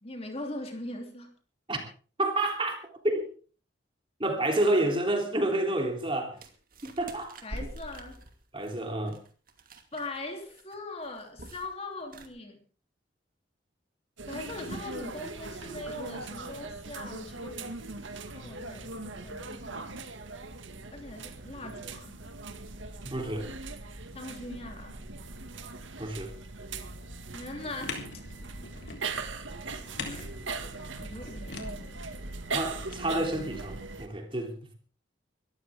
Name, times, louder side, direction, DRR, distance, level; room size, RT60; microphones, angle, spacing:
voice 1, 0.0-1.3 7.4-8.2 9.9-12.6 14.3-17.7 18.3-20.0 20.9-22.2 24.1-25.0 27.3-28.1 30.0-30.3 31.0-32.1, left 2 dB, 30° left, 3.2 m, -41 dB
voice 2, 2.2-3.3 4.2-6.4 6.8-7.3 8.5-9.2 23.0-23.5 26.0-26.3 32.5-34.7, right 1 dB, 25° right, 3.2 m, -29 dB
sound 1, 6.4-10.2 10.4-10.8 11.0-11.7 12.0-12.3, right 1 dB, 45° right, 2.5 m, -44 dB
sound 2, 14.2-34.1, right 3 dB, 75° right, 1.9 m, -40 dB
sound 3, 27.8-33.0, left 4 dB, 60° left, 3.7 m, -43 dB
23.5 x 14.5 x 3.6 m
head